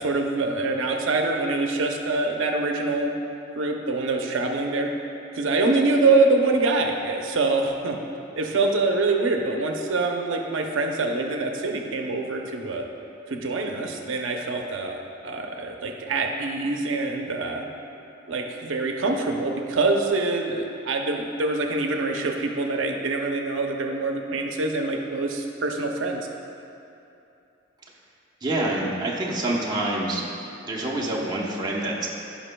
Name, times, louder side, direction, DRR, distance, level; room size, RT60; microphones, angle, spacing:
voice 1, 0.0-3.1 3.6-4.9 5.3-8.0 8.4-12.9 13.3-17.6 18.3-26.3, right 3 dB, 85° right, 2 dB, 0.6 m, -25 dB
voice 2, 28.4-30.3 30.6-32.1, right 1 dB, 20° right, -4 dB, 0.9 m, -26 dB
15.0 x 5.2 x 2.2 m, 2.7 s
head